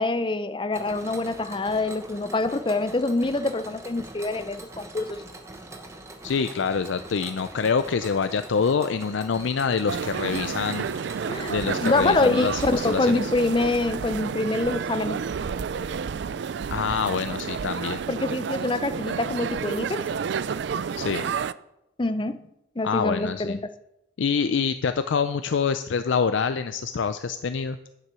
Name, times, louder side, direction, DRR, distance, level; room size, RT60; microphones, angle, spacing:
voice 1, 0.0-5.2 11.3-15.2 18.1-20.1 22.0-22.4 22.8-23.6, left 2 dB, 25° left, 0.5 m, -25 dB
Mechanisms, 0.7-12.9, right 2 dB, 15° right, 1.0 m, -43 dB
voice 2, 6.2-10.9 11.5-13.3 16.7-18.0 21.0-21.3 22.8-23.6 24.2-27.8, left 5 dB, 75° left, 0.5 m, -26 dB
sound 1, 9.9-21.5, right 6 dB, 65° right, 0.3 m, -30 dB
9.5 x 7.5 x 6.2 m
head